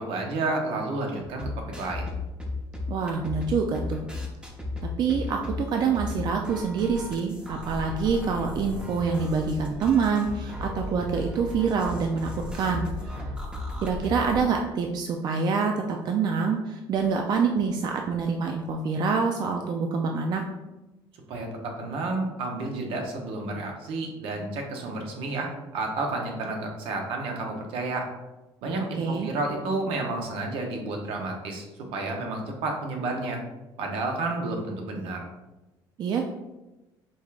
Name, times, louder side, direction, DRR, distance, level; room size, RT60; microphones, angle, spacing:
voice 1, 0.0-1.5 1.8-2.1 21.3-28.1 28.6-33.4 33.8-35.3, right 2 dB, 75° right, 2 dB, 0.9 m, -31 dB
sound 1, 1.2-14.5, left 2 dB, 10° right, 0.7 m, -35 dB
voice 2, 2.9-4.0 5.0-13.2 13.8-20.4 29.0-29.3 36.0-36.2, right 5 dB, 50° right, 3 dB, 0.4 m, -26 dB
5.3 x 3.4 x 2.4 m, 1.0 s
cardioid pair, 115°, 9 cm